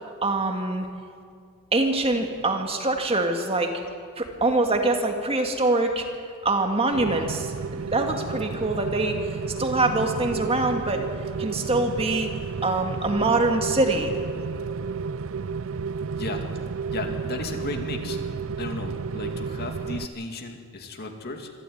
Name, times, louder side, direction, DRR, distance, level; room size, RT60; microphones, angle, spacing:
voice 1, 0.2-0.9 1.7-3.7 4.2-6.1 6.4-9.2 9.6-11.0 11.4-12.3 12.6-14.1, right 2 dB, 25° right, 4 dB, 2.1 m, -24 dB
Rain, 6.9-20.1, right 5 dB, 65° right, 0.5 m, -32 dB
voice 2, 16.2-16.5 16.9-18.2 18.6-21.5, left 2 dB, 45° left, 4 dB, 2.3 m, -34 dB
25.0 x 13.5 x 9.4 m, 2.2 s
head